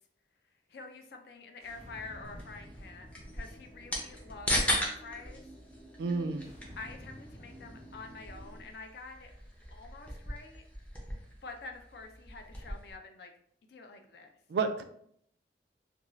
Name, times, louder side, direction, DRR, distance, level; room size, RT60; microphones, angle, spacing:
voice 1, 0.7-5.5 6.8-9.3 9.7-10.6 11.4-13.3 13.7-14.3, left 3 dB, 60° left, 5 dB, 0.4 m, -47 dB
sound 1, 1.6-8.6, equal, 40° left, 0.8 m, -51 dB
sound 2, 2.2-12.9, equal, 10° left, 0.5 m, -38 dB
voice 2, 6.0-6.5 14.5-14.8, right 4 dB, 65° right, 7 dB, 0.3 m, -31 dB
2.5 x 2.3 x 3.0 m, 0.68 s
head